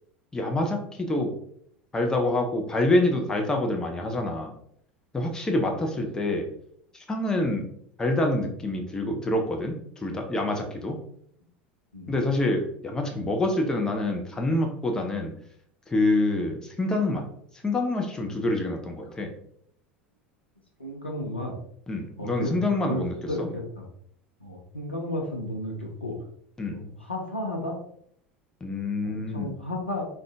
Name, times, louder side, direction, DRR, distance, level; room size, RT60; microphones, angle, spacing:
voice 1, 0.3-1.3 1.9-4.5 5.1-6.5 6.9-7.6 8.0-11.0 12.1-15.3 15.9-17.2 17.6-19.3 21.9-23.5 26.6-26.9 28.6-29.5, left 2 dB, 10° left, 2 dB, 0.5 m, -26 dB
voice 2, 20.8-21.6 22.2-22.6 22.9-23.8 24.4-26.2 26.7-27.8 29.0-30.1, left 1 dB, 90° left, -1 dB, 0.5 m, -33 dB
3.6 x 2.2 x 2.4 m, 0.67 s
figure-of-eight pair, 75°, 6 cm